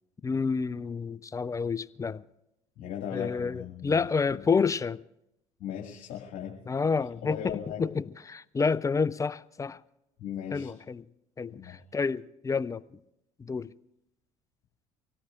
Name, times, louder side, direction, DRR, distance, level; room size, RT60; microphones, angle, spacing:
voice 1, 0.2-2.2 3.1-5.0 6.7-7.4 7.8-9.8 10.5-11.0 11.4-12.8 13.4-13.7, left 5 dB, 20° left, 0.5 m, -29 dB
voice 2, 2.8-4.0 4.3-4.4 5.6-6.5 7.2-7.8 10.2-10.7 11.5-11.8, left 9 dB, 55° left, 2.2 m, -38 dB
24.5 x 17.5 x 2.5 m
hypercardioid pair, 60°, 17 cm